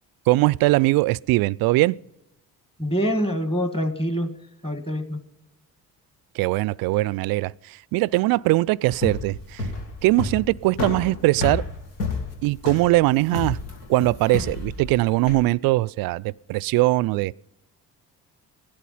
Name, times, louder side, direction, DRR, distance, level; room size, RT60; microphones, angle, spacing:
voice 1, 0.3-2.0 6.3-9.7 10.0-11.6 12.4-13.6 13.9-17.4, right 19 dB, 50° right, 0.4 m, -21 dB
voice 2, 2.8-4.3 4.6-5.2, equal, 10° left, 1.7 m, -25 dB
sound 1, 8.9-15.4, left 3 dB, 80° left, 2.1 m, -30 dB
16.5 x 12.0 x 5.6 m
figure-of-eight pair, 50°, 48 cm